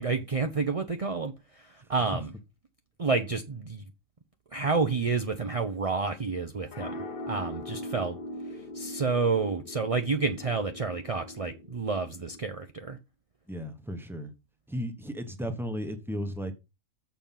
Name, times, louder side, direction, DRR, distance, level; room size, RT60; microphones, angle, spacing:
voice 1, 0.0-2.3 3.0-3.8 4.5-6.9 7.3-8.2 8.5-13.0, right 4 dB, 40° right, 0.5 m, -29 dB
voice 2, 1.8-2.2 13.5-14.3 14.7-16.5, equal, ahead, 1.0 m, -35 dB
sound 1, 6.2-12.4, equal, 45° left, 0.9 m, -41 dB
7.0 x 5.4 x 5.8 m
omnidirectional pair, 1.6 m